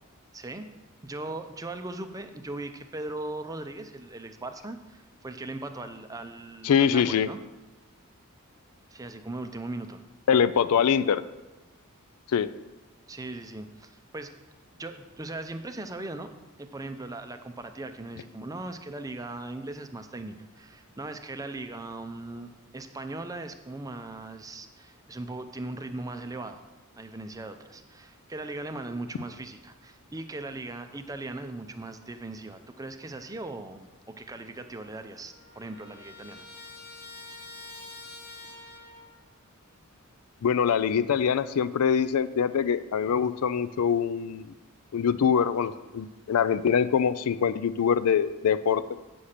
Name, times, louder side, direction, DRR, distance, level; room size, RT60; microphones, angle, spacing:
voice 1, 0.3-0.7 1.0-7.4 8.9-10.0 13.1-14.3 14.8-16.3 16.6-26.6 27.0-33.9 34.2-36.5, right 2 dB, 15° right, 8 dB, 0.5 m, -39 dB
voice 2, 6.6-7.3 10.3-11.2 12.3-12.5 40.4-44.5 44.9-48.8, left 7 dB, 80° left, 14 dB, 0.4 m, -24 dB
Trumpet, 34.8-39.2, left 3 dB, 25° left, 1.3 m, -46 dB
8.6 x 5.7 x 6.6 m, 1.1 s
head